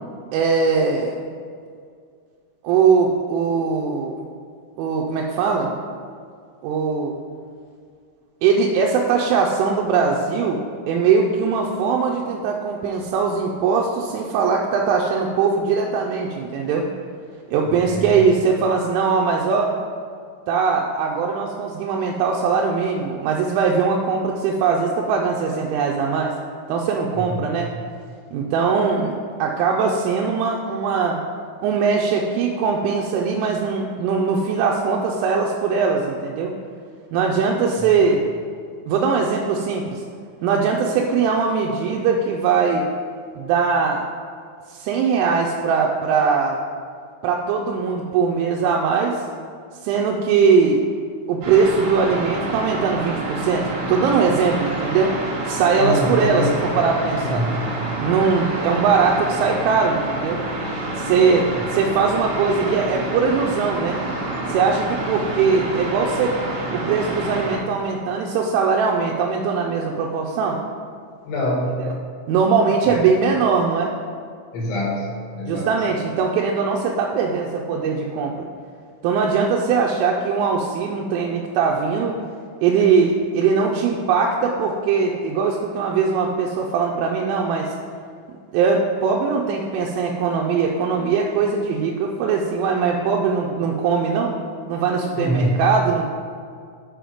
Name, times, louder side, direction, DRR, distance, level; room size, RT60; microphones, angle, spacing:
voice 1, 0.3-1.3 2.6-4.2 4.8-5.7 6.6-7.2 8.4-10.6 10.9-16.9 17.5-19.7 20.5-26.3 26.7-27.7 28.3-29.1 29.4-31.2 31.6-36.5 37.1-38.2 38.9-40.0 40.4-42.9 43.4-44.0 44.7-46.6 47.2-49.2 49.8-50.8 51.3-55.1 55.5-57.5 58.0-60.4 61.0-64.0 64.5-66.3 66.7-70.6 71.8-71.9 72.3-73.9 75.5-78.3 79.0-82.2 82.6-87.7 88.5-94.4 94.7-96.1, right 5 dB, 90° right, 0 dB, 3.1 m, -20 dB
voice 2, 17.7-18.0 55.8-56.6 57.2-57.6 71.3-71.9 72.9-73.0 74.5-75.8 95.2-95.5, equal, 75° left, -2 dB, 3.4 m, -24 dB
sound 1, 51.4-67.6, right 2 dB, 70° right, 3.7 m, -28 dB
7.7 x 5.0 x 4.9 m, 2.2 s
omnidirectional pair, 5.5 m